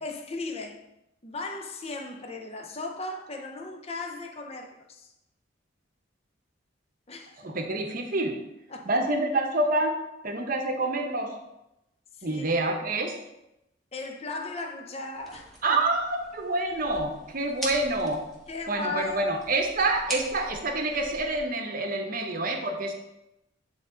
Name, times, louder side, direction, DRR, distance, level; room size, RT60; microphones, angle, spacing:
voice 1, 0.0-0.8 1.2-5.1 7.1-7.4 8.7-9.0 12.2-12.5 13.9-15.8 18.5-19.2, left 3 dB, 30° left, 3 dB, 0.7 m, -37 dB
voice 2, 7.4-8.4 8.9-10.0 10.2-11.3 12.2-13.1 15.6-18.2 18.7-22.9, right 2 dB, 45° right, 4 dB, 0.8 m, -27 dB
sound 1, 15.1-21.4, right 1 dB, ahead, 1.2 m, -42 dB
9.1 x 3.7 x 3.8 m, 0.89 s
head